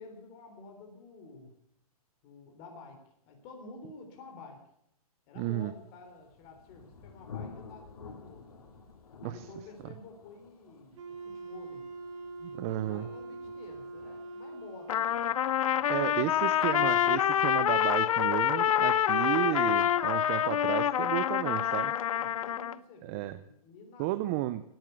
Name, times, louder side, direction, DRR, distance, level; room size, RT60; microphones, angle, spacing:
voice 1, 0.0-1.5 2.2-4.6 5.3-8.5 9.2-11.9 12.6-15.3 15.7-16.2 16.5-16.6 22.0-24.5, left 3 dB, 30° left, 3 dB, 3.7 m, -50 dB
voice 2, 5.4-5.7 9.2-9.4 12.4-13.1 15.9-21.9 23.0-23.4 24.0-24.6, right 15 dB, 25° right, 13 dB, 0.5 m, -33 dB
Thunder, 5.9-17.5, left 5 dB, 80° left, 3.7 m, -51 dB
Wind instrument woodwind instrument, 10.9-15.2, right 2 dB, 55° right, 3.0 m, -43 dB
Trumpet, 14.9-22.8, left 10 dB, 60° left, 0.7 m, -27 dB
17.5 x 9.0 x 8.0 m, 0.75 s
hypercardioid pair, 155°, 19 cm